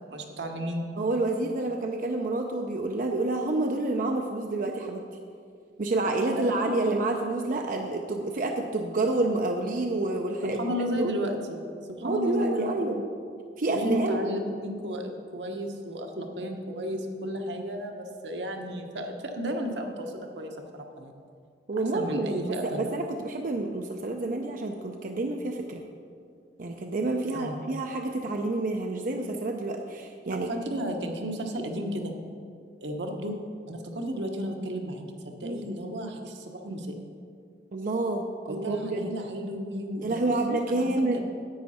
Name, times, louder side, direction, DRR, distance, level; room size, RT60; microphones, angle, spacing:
voice 1, 0.0-0.9 6.2-7.1 10.4-11.6 12.0-12.7 13.7-21.1 21.9-23.0 27.3-27.6 30.3-32.1 32.8-33.4 33.7-36.9 38.5-41.2, equal, 85° right, 3 dB, 1.1 m, -33 dB
voice 2, 1.0-5.0 5.8-10.6 11.0-11.2 12.0-13.0 13.6-14.2 21.7-22.4 22.6-25.8 26.6-30.5 35.4-35.6 37.7-39.1 40.0-41.2, right 2 dB, 50° right, 3 dB, 0.6 m, -28 dB
10.5 x 8.5 x 4.2 m, 2.2 s
head